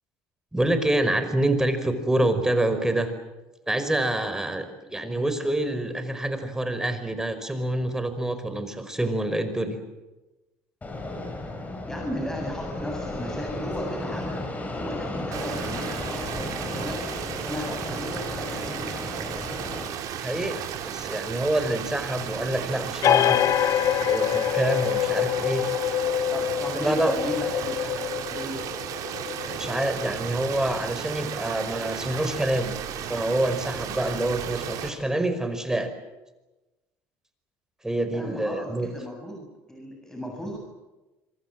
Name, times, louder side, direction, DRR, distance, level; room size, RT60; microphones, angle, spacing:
voice 1, 0.5-3.1 3.7-9.8 20.2-23.4 24.1-25.6 26.8-27.1 29.4-32.8 33.1-35.9 37.8-38.9, right 1 dB, 10° right, 9 dB, 5.2 m, -26 dB
Fixed-wing aircraft airplane, 10.8-19.9, left 2 dB, 25° left, 7.6 m, -34 dB
voice 2, 11.9-14.4 14.7-17.1 17.4-19.1 26.3-28.6 38.1-40.6, equal, 10° left, 1 dB, 7.8 m, -35 dB
sound 1, 15.3-34.9, right 9 dB, 65° right, 4.7 m, -34 dB
sound 2, 23.0-30.2, left 11 dB, 55° left, 1.0 m, -25 dB
26.0 x 25.5 x 7.7 m, 1.1 s
supercardioid pair, 80°, 7 cm